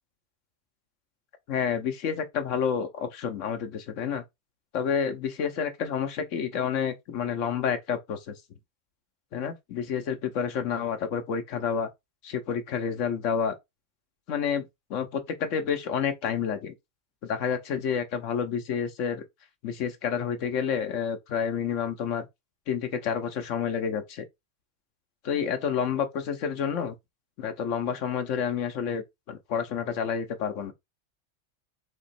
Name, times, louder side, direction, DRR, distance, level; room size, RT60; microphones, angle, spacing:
voice 1, 1.5-4.2 4.7-8.4 9.3-11.9 12.2-13.6 14.3-16.7 17.2-19.2 19.6-22.3 22.7-24.3 25.2-26.9 27.4-30.7, left 7 dB, 80° left, 1.2 m, -29 dB
4.2 x 3.0 x 4.1 m
omnidirectional pair, 1.3 m